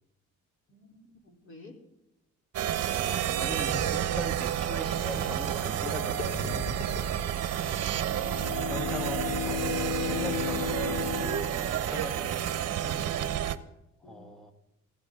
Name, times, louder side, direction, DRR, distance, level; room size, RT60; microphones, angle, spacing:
voice 1, 0.7-1.8 7.6-8.3 14.0-14.3, left 2 dB, 45° left, 2 dB, 3.8 m, -51 dB
sound 1, 2.5-13.6, right 10 dB, 55° right, 1.0 m, -30 dB
voice 2, 2.9-6.6 8.7-13.0 14.0-14.5, right 1 dB, ahead, 5 dB, 1.5 m, -41 dB
Gurgling, 3.4-8.1, left 2 dB, 60° left, 5.5 m, -39 dB
Bowed string instrument, 8.0-12.3, left 18 dB, 85° left, 0.5 m, -35 dB
21.0 x 15.0 x 3.8 m, 0.89 s
cardioid pair, 130°, 30 cm